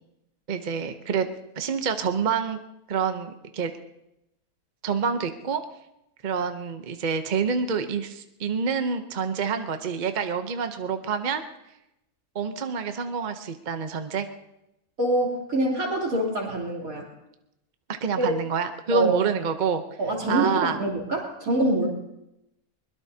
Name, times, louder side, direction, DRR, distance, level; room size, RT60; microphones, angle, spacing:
voice 1, 0.5-1.3 1.6-2.6 2.9-3.7 4.8-5.6 6.2-11.4 12.3-14.3 18.0-19.8 20.3-20.8, right 6 dB, 40° right, 7 dB, 0.7 m, -27 dB
voice 2, 15.0-17.1 18.2-18.3 18.9-19.2 20.0-21.9, right 1 dB, 70° right, -2 dB, 3.7 m, -25 dB
22.0 x 21.0 x 2.8 m, 0.88 s
omnidirectional pair, 1.6 m